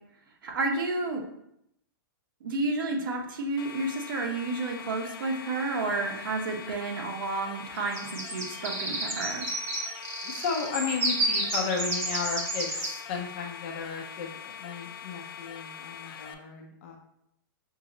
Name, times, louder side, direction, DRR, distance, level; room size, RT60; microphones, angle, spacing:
voice 1, 0.4-1.2 2.4-9.4, right 3 dB, 70° right, 2 dB, 0.9 m, -31 dB
sound 1, 3.6-16.3, left 8 dB, 85° left, 0.5 m, -43 dB
sound 2, 7.9-12.9, right 2 dB, 40° right, 0.9 m, -31 dB
voice 2, 10.2-17.0, left 5 dB, 30° left, 2 dB, 0.5 m, -34 dB
5.5 x 2.0 x 3.7 m, 0.77 s
hypercardioid pair, 175°, 12 cm